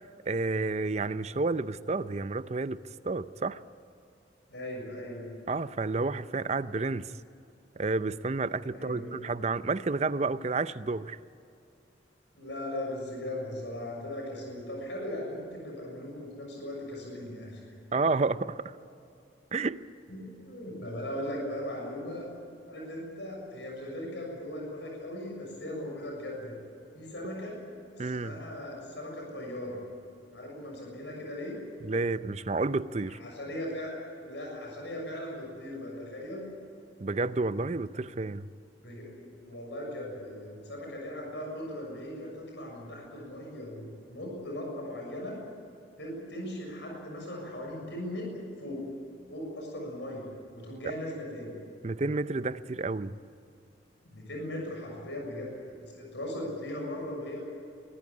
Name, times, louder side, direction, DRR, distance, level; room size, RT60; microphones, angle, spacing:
voice 1, 0.3-2.8 3.0-3.6 5.5-7.1 7.8-11.2 17.9-18.7 19.5-19.8 28.0-28.4 31.8-33.2 37.0-38.5 51.8-53.1, right 3 dB, 35° right, 0.5 m, -30 dB
voice 2, 4.5-5.3 8.7-9.1 12.3-17.6 20.1-22.2 22.6-26.6 26.9-27.6 27.9-29.8 30.3-31.6 33.1-33.9 34.2-36.5 38.8-45.4 46.0-48.2 48.6-48.8 49.3-50.2 50.5-51.5 54.0-55.6 55.9-57.4, left 1 dB, 75° left, 6.8 m, -38 dB
23.0 x 15.5 x 9.8 m
head